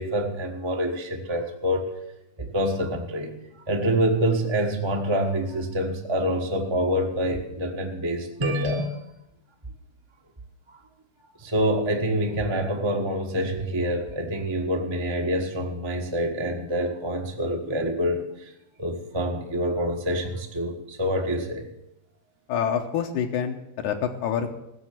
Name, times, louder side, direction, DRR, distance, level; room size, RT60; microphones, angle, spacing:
voice 1, 0.0-1.9 2.4-3.3 3.7-9.0 10.7-10.8 11.4-18.5 18.8-21.7, equal, 25° right, 1 dB, 0.6 m, -26 dB
voice 2, 22.5-24.6, left 8 dB, 80° left, 3 dB, 2.6 m, -27 dB
16.0 x 7.1 x 9.1 m, 0.87 s
omnidirectional pair, 3.5 m